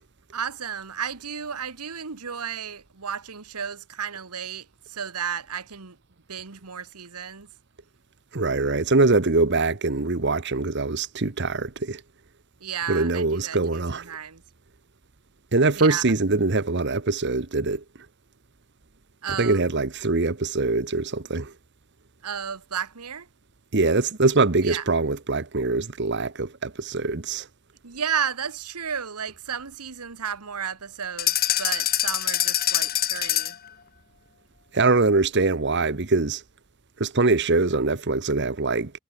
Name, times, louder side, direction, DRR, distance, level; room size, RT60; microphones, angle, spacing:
voice 1, 0.3-6.0 6.3-7.5 12.6-14.4 15.8-16.0 19.2-19.6 22.2-23.3 24.6-24.8 27.8-33.6, right 7 dB, 90° right, 1.4 m, -33 dB
voice 2, 8.3-12.0 12.9-14.1 15.5-17.8 19.3-21.5 23.7-27.5 34.7-36.4 37.0-38.9, right 3 dB, 50° right, 1.1 m, -23 dB
sound 1, 31.2-33.7, left 13 dB, 40° left, 0.9 m, -24 dB
head